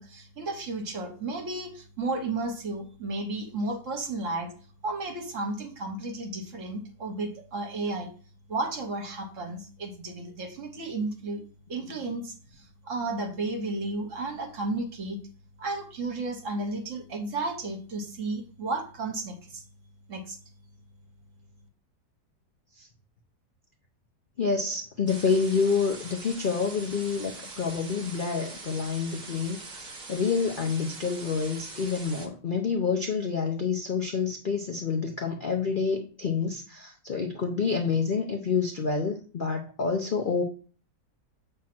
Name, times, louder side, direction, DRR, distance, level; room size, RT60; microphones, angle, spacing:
voice 1, 0.0-4.5 4.8-8.1 8.5-11.4 11.7-15.2 15.6-19.6 20.1-20.4, right 2 dB, 50° right, 5 dB, 1.2 m, -33 dB
voice 2, 24.4-40.4, left 5 dB, 85° left, 2 dB, 0.4 m, -28 dB
sound 1, 25.1-32.3, right 3 dB, 30° right, 0.9 m, -43 dB
7.5 x 3.2 x 5.9 m, 0.41 s
omnidirectional pair, 1.9 m